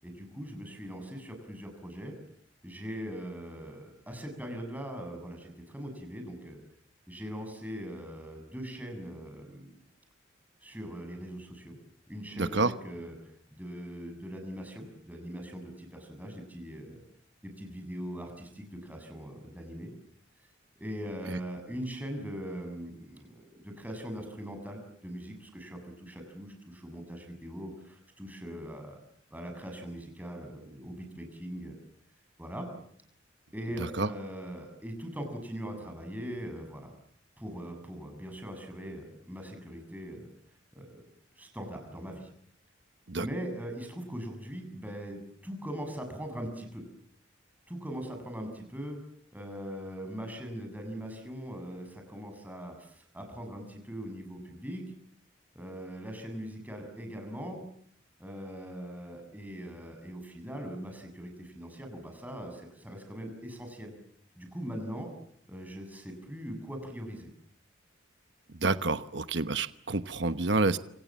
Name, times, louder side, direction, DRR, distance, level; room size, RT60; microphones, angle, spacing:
voice 1, 0.0-2.1 2.6-6.6 7.1-9.7 10.6-11.8 12.1-17.0 17.4-19.9 20.8-29.0 29.3-31.8 32.4-32.7 33.5-36.9 37.4-40.3 40.7-41.0 41.4-42.3 43.2-46.8 47.7-49.0 49.3-54.8 55.5-57.6 58.2-64.0 64.4-65.1 65.5-67.3, equal, 10° right, 4 dB, 7.1 m, -41 dB
voice 2, 12.4-12.7 21.3-21.4 33.8-34.1 43.1-43.3 68.6-70.8, right 3 dB, 60° right, 11 dB, 1.1 m, -28 dB
28.0 x 27.5 x 7.4 m, 0.66 s
head